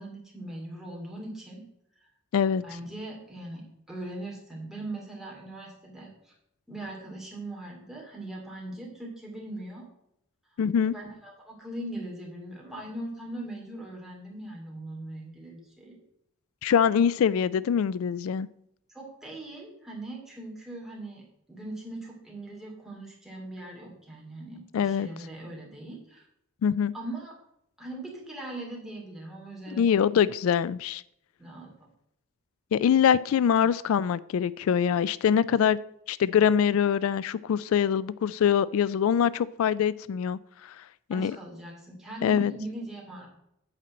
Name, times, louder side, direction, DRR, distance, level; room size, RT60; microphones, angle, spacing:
voice 1, 0.0-1.6 2.6-6.3 6.7-9.9 10.9-16.0 18.9-21.2 21.5-26.2 26.9-27.3 27.8-30.0 31.4-31.7 41.1-43.3, right 1 dB, ahead, -3 dB, 2.5 m, -40 dB
voice 2, 2.3-2.6 10.6-10.9 16.6-18.5 24.7-25.1 26.6-26.9 29.7-31.0 32.7-35.8 36.1-40.8 41.1-41.4 42.2-42.5, left 8 dB, 80° left, 18 dB, 0.3 m, -24 dB
9.0 x 4.4 x 7.4 m, 0.78 s
head